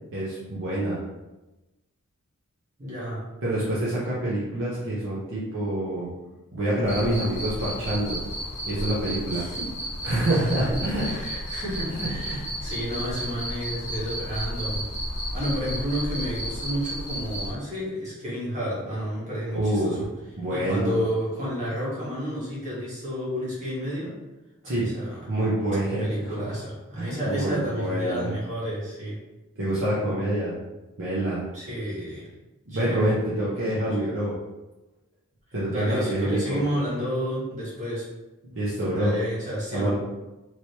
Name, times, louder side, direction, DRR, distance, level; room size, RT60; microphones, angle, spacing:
voice 1, 0.1-1.0 3.4-6.2 6.5-8.2 8.6-9.5 10.0-11.2 11.9-12.4 19.5-20.1 20.4-21.0 24.6-24.9 25.3-26.5 26.9-28.3 29.6-30.5 31.0-31.4 32.7-34.3 35.5-36.6 38.4-39.1 39.7-39.9, right 1 dB, 55° right, -8 dB, 0.8 m, -26 dB
voice 2, 2.8-3.2 9.3-9.6 11.0-14.8 15.3-20.0 20.5-24.1 24.6-25.2 26.0-29.2 31.5-32.2 32.7-33.2 33.6-33.8 35.7-38.0 39.0-39.9, equal, 35° right, -8 dB, 1.3 m, -31 dB
Cricket, 6.8-17.5, equal, 15° left, 1.0 m, -33 dB
3.1 x 3.0 x 2.8 m, 1.1 s
head